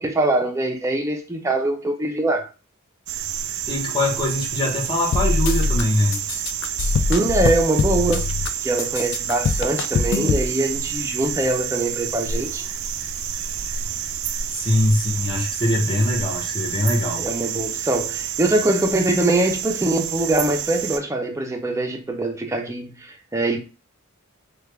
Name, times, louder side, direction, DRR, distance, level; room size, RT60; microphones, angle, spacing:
voice 1, 0.0-2.5 7.1-8.2 8.6-12.6 17.2-23.6, right 2 dB, 15° right, 0.5 m, -23 dB
sound 1, 3.1-21.0, right 9 dB, 75° right, 0.4 m, -29 dB
voice 2, 3.7-6.2 14.5-17.2, left 1 dB, 25° left, 1.1 m, -22 dB
sound 2, 5.1-5.8 6.1-8.5 8.8-10.5, left 4 dB, 60° left, 0.3 m, -22 dB
3.4 x 2.3 x 3.3 m
head